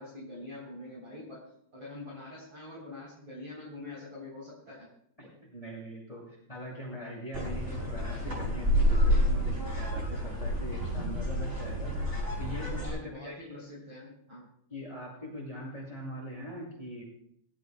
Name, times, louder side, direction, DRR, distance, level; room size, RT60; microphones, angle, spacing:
voice 1, 0.0-4.9 12.6-14.4, left 2 dB, 35° right, -4 dB, 4.3 m, -45 dB
voice 2, 5.2-13.6 14.7-17.0, equal, 5° left, -4 dB, 6.7 m, -42 dB
sound 1, 7.3-12.9, equal, 15° right, 7.6 m, -29 dB
20.5 x 16.0 x 2.3 m, 0.69 s
omnidirectional pair, 5.0 m